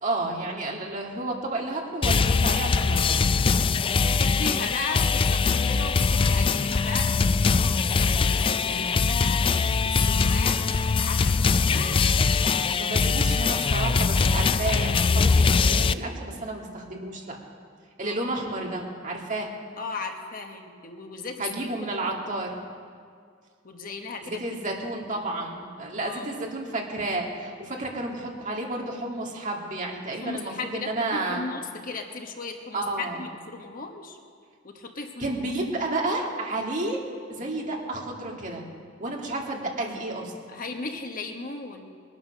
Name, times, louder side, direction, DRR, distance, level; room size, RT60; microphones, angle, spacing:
voice 1, 0.0-3.3 12.7-17.4 18.0-19.5 21.4-22.6 24.2-31.4 32.7-33.2 35.2-37.0 37.3-38.7 39.0-40.3, right 2 dB, 40° right, 0 dB, 2.3 m, -31 dB
sound 1, 2.0-15.9, left 4 dB, 25° left, 0.3 m, -22 dB
voice 2, 3.0-3.3 3.9-7.3 7.6-9.4 9.8-10.6 11.1-12.0 18.0-18.3 19.8-21.5 21.9-22.0 23.6-24.4 26.0-26.3 30.1-34.2 34.6-35.4 40.5-41.9, left 4 dB, 45° left, 4 dB, 1.2 m, -36 dB
21.0 x 9.6 x 6.6 m, 2.1 s
head